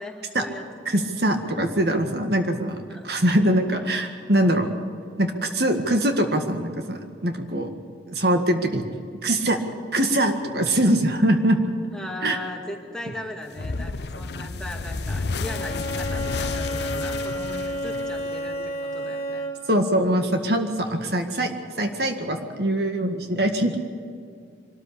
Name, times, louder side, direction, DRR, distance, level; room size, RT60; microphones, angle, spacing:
voice 1, 0.0-0.7 2.9-3.1 11.9-19.5, left 1 dB, 5° left, 0 dB, 2.4 m, -38 dB
voice 2, 0.9-4.7 5.2-7.7 8.1-8.8 9.2-9.6 9.9-11.6 12.2-12.4 19.7-21.5 21.8-23.8, right 1 dB, 65° right, 5 dB, 1.9 m, -23 dB
sound 1, 13.6-18.7, left 3 dB, 70° left, 0.7 m, -31 dB
Bowed string instrument, 15.4-19.8, equal, 35° left, 2.4 m, -31 dB
24.0 x 13.5 x 8.6 m, 2.3 s
head